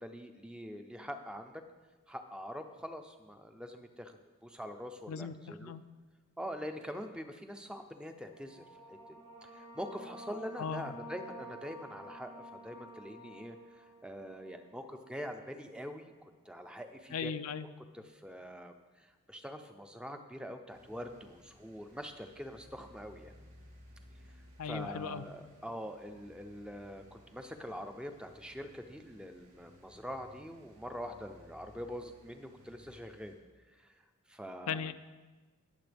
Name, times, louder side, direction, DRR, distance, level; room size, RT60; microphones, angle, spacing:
voice 1, 0.0-1.6 2.1-5.7 6.4-17.3 17.9-23.3 24.3-33.4 33.7-34.9, equal, 5° right, 6 dB, 0.5 m, -44 dB
voice 2, 5.1-5.8 10.6-10.9 17.1-17.7 24.6-25.2 34.7-34.9, left 6 dB, 80° left, 11 dB, 0.5 m, -38 dB
sound 1, 8.3-15.5, right 1 dB, 90° right, 2.0 m, -51 dB
sound 2, 20.7-33.3, left 1 dB, 65° right, 3.4 m, -59 dB
21.0 x 7.0 x 3.4 m, 1.3 s
head